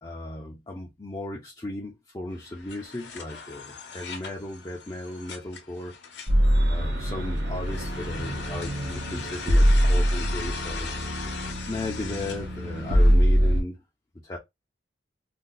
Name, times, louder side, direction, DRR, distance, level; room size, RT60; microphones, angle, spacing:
voice 1, 0.0-5.9 6.6-11.2 11.7-13.8 14.2-14.4, left 1 dB, 20° left, 0.5 m, -36 dB
sound 1, 2.3-13.1, left 5 dB, 70° left, 0.8 m, -40 dB
sound 2, 6.3-13.6, equal, 75° right, 0.9 m, -23 dB
2.6 x 2.2 x 3.8 m
head